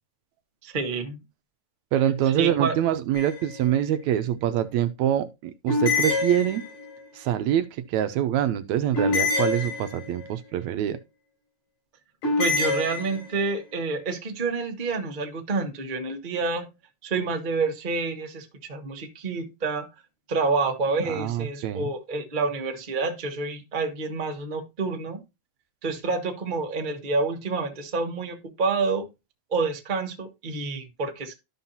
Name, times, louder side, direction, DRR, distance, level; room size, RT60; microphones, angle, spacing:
voice 1, 0.6-1.2 2.3-2.8 12.4-16.7 17.0-19.9 20.3-25.2 25.8-29.1 29.5-31.4, right 4 dB, 50° right, 0.5 m, -28 dB
voice 2, 1.9-6.6 7.1-11.0 21.1-21.9, right 11 dB, 75° right, 1.7 m, -25 dB
sound 1, 3.1-3.7 5.7-7.0 8.9-10.3 12.2-13.5, left 3 dB, 75° left, 6.9 m, -26 dB
13.5 x 5.6 x 2.8 m
omnidirectional pair, 3.8 m